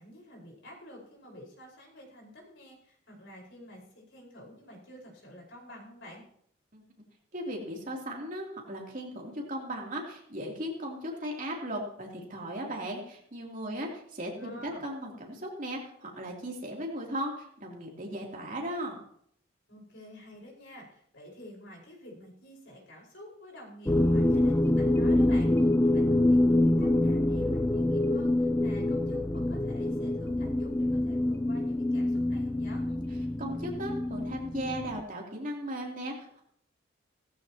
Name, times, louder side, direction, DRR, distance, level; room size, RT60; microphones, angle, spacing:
voice 1, 0.0-6.2 13.8-13.9 14.3-14.8 19.7-32.8, equal, 65° left, -1 dB, 5.1 m, -49 dB
voice 2, 7.3-13.9 14.2-19.0 32.8-33.0 33.4-36.4, equal, 40° right, -1 dB, 3.2 m, -37 dB
sound 1, 23.9-35.0, left 1 dB, 10° left, 0.4 m, -26 dB
17.5 x 14.5 x 3.0 m, 0.65 s
head